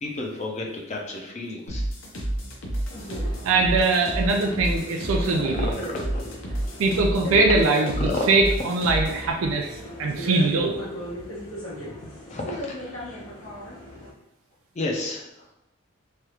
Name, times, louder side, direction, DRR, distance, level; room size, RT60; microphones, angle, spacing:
voice 1, 0.0-1.8 5.5-6.3 8.0-8.2 12.3-13.2 14.7-15.5, left 2 dB, 35° left, 0 dB, 0.5 m, -32 dB
sound 1, 1.7-9.3, right 1 dB, 70° left, 0.6 m, -30 dB
sound 2, 2.9-14.1, equal, 90° left, 1.2 m, -38 dB
voice 2, 3.4-5.8 6.8-10.8, right 3 dB, 85° right, 2 dB, 0.4 m, -22 dB
3.2 x 2.4 x 2.9 m, 0.86 s
head